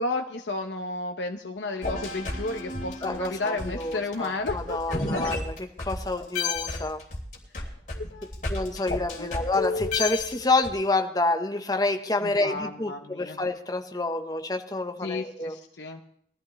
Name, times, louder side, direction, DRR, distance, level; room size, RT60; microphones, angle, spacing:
voice 1, 0.0-5.4 7.9-8.3 9.2-9.4 12.2-13.4 15.0-16.0, left 2 dB, 85° left, 4 dB, 0.9 m, -33 dB
sound 1, 1.8-6.0 6.3-10.7, left 3 dB, 45° left, 3.3 m, -32 dB
voice 2, 3.0-5.5 5.8-7.0 8.5-15.5, left 2 dB, 20° left, 6 dB, 1.1 m, -28 dB
22.0 x 13.5 x 3.2 m, 0.66 s
head